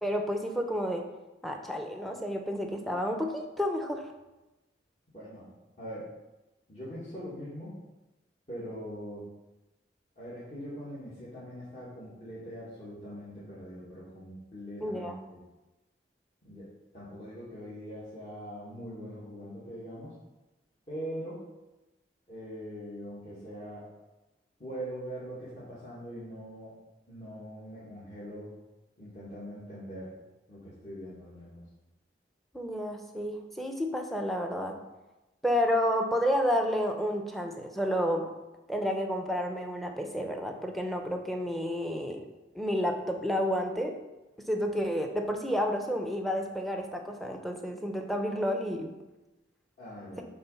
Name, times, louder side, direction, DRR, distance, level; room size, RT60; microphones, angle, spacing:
voice 1, 0.0-1.0 1.4-4.0 14.8-15.1 32.5-34.8 35.4-38.3 38.7-42.2 42.5-44.0 44.5-48.9, equal, ahead, 3 dB, 0.8 m, -30 dB
voice 2, 5.1-5.5 5.8-6.1 6.7-7.7 8.5-9.3 10.2-15.4 16.4-20.2 20.9-21.4 22.3-23.9 24.6-26.8 27.1-28.5 29.0-30.2 30.5-31.6 44.6-44.7 49.8-50.2, equal, 40° left, -10 dB, 2.2 m, -42 dB
8.6 x 3.8 x 5.6 m, 1.0 s
head